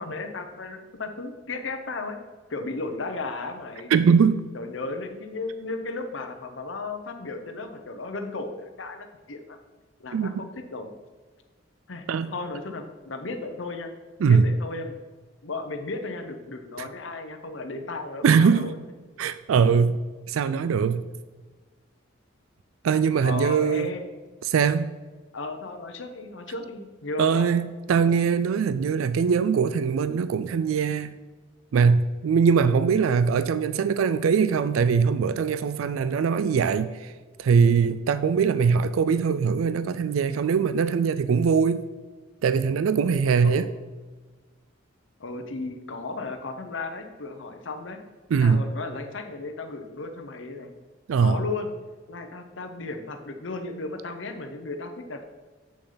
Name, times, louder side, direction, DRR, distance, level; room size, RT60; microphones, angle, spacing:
voice 1, 0.0-2.2 2.5-4.1 4.5-9.6 10.0-10.9 11.9-13.9 14.2-15.0 15.4-18.7 23.1-24.1 25.3-27.5 43.4-43.7 45.2-48.0 48.4-50.7 51.2-51.7 52.1-55.2, left 3 dB, 70° left, 6 dB, 1.0 m, -35 dB
voice 2, 3.9-4.4 10.1-10.3 12.1-12.3 14.2-14.6 16.8-16.9 18.2-18.7 19.2-20.0 20.3-21.0 22.8-23.9 24.4-24.9 27.2-31.1 31.7-37.1 37.4-41.8 42.4-43.7 48.3-48.6 51.1-51.4, right 6 dB, 90° right, 12 dB, 0.4 m, -22 dB
8.1 x 6.5 x 4.0 m, 1.3 s
head